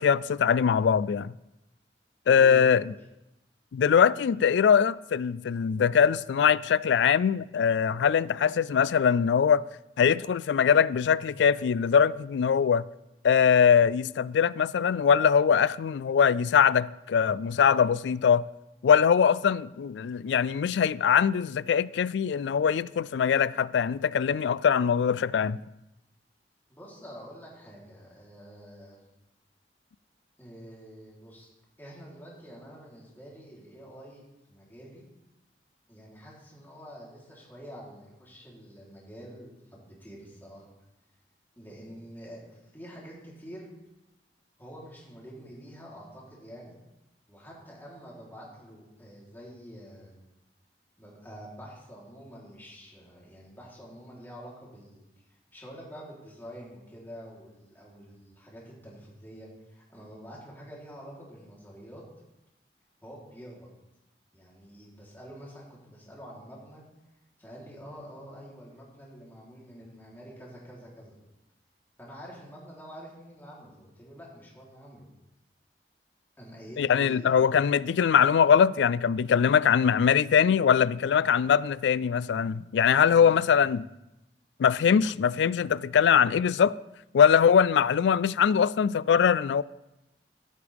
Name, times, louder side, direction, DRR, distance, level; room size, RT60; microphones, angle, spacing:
voice 1, 0.0-1.3 2.3-2.9 3.7-9.6 10.0-12.8 13.2-18.4 18.8-25.6 76.8-83.8 84.6-86.8 87.1-89.6, left 7 dB, 80° left, 0.3 m, -22 dB
voice 2, 2.3-2.9 26.7-29.0 30.4-31.5 31.8-34.2 34.5-35.1 35.9-40.7 41.6-43.7 44.6-46.8 47.3-50.1 51.0-62.0 63.0-63.7 64.3-66.8 67.4-71.2 72.0-75.1 76.4-77.4 82.8-83.7 84.8-85.1, equal, 10° left, 3.5 m, -47 dB
15.0 x 8.2 x 3.5 m
head